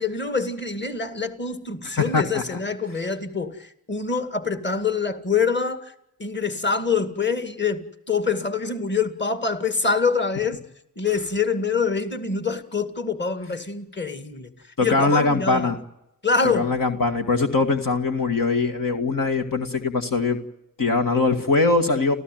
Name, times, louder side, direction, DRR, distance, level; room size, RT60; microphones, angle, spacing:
voice 1, 0.0-5.9 6.2-10.6 11.0-14.5 14.8-15.7 16.2-16.7, left 5 dB, 30° left, 2.3 m, -25 dB
voice 2, 1.8-2.6 14.8-15.8 16.5-20.4 20.8-22.2, left 3 dB, 70° left, 2.0 m, -22 dB
30.0 x 15.0 x 9.3 m
cardioid pair, 50°, 34 cm